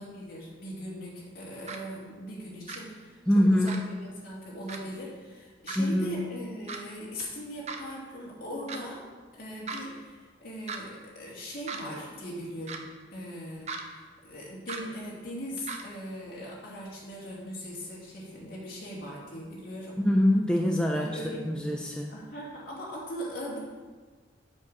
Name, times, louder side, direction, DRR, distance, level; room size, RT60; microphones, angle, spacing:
voice 1, 0.0-9.0 9.3-20.0 20.9-21.5 22.1-23.6, equal, 55° left, -5 dB, 2.6 m, -40 dB
sound 1, 1.7-1.8 2.7-2.8 3.7-3.8 4.7-4.8 5.7-5.8 6.7-6.8 7.7-7.8 8.7-8.8 9.7-9.8 10.7-10.8 11.7-11.8 12.7-12.8 13.7-13.8 14.7-14.8 15.7-15.8, right 5 dB, 35° right, 0.7 m, -36 dB
voice 2, 3.3-3.8 5.8-6.2 20.0-22.1, equal, 5° left, 0 dB, 0.5 m, -24 dB
7.2 x 6.5 x 5.5 m, 1.4 s
head